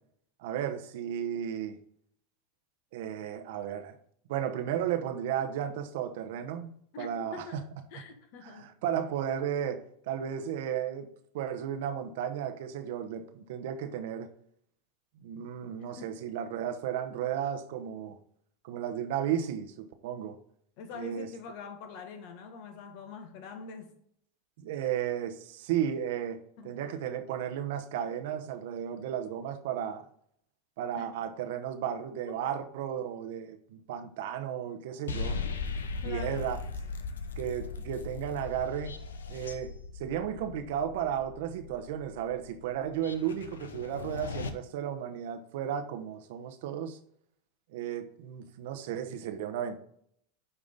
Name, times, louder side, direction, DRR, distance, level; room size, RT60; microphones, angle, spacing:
voice 1, 0.4-1.8 2.9-3.9 4.3-7.6 8.4-11.1 11.3-14.3 15.2-18.2 18.6-20.4 20.9-21.3 24.6-30.0 30.8-35.4 36.0-36.6 37.4-38.9 39.3-39.7 40.0-47.0 47.7-49.8, right 9 dB, 65° right, 0.9 m, -34 dB
voice 2, 6.9-7.6 7.9-8.7 15.8-16.2 20.8-24.0 26.6-26.8 30.9-31.1 32.3-32.4 36.0-36.5, left 5 dB, 60° left, 1.5 m, -44 dB
sound 1, 35.1-44.5, left 4 dB, 85° left, 0.8 m, -38 dB
9.9 x 3.7 x 5.2 m
hypercardioid pair, 95°, 0 cm